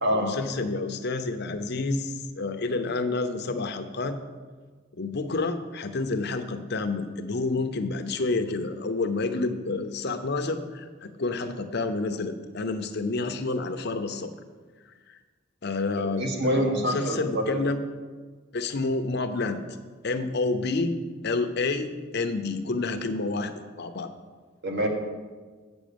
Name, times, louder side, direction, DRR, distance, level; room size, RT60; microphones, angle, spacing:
voice 1, 0.1-4.2 5.0-14.3 15.1-15.2 15.6-17.8 18.5-19.6 20.0-21.0 21.2-24.1, left 3 dB, 55° left, 8 dB, 0.7 m, -29 dB
voice 2, 16.2-17.6 24.6-24.9, equal, 55° right, 1 dB, 1.6 m, -26 dB
8.4 x 6.2 x 6.9 m, 1.4 s
head